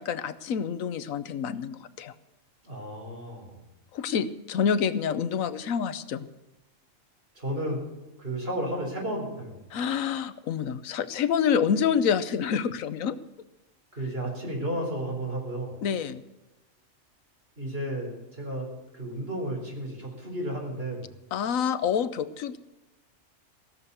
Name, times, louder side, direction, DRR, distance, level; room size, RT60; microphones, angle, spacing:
voice 1, 0.0-2.1 3.9-6.2 9.7-13.2 15.8-16.2 21.3-22.6, left 7 dB, 85° left, 14 dB, 1.2 m, -27 dB
voice 2, 2.6-3.6 7.3-7.8 8.2-9.6 13.9-15.8 17.6-18.7 18.9-21.1, right 1 dB, 45° right, -1 dB, 4.4 m, -33 dB
16.5 x 7.1 x 8.2 m, 1.0 s
omnidirectional pair, 1.4 m